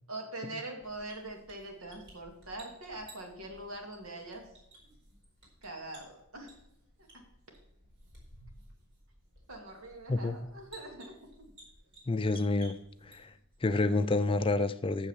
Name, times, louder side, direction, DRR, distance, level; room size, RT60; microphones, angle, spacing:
voice 1, 0.1-4.4 5.6-6.5 7.1-7.2 9.5-11.2, right 2 dB, 75° right, 2 dB, 2.5 m, -43 dB
sound 1, 0.8-13.6, right 1 dB, 60° right, 4.5 m, -57 dB
voice 2, 12.1-12.8 13.0-13.3 13.6-15.1, left 2 dB, 25° left, 11 dB, 0.4 m, -29 dB
8.5 x 7.3 x 7.3 m, 0.79 s
head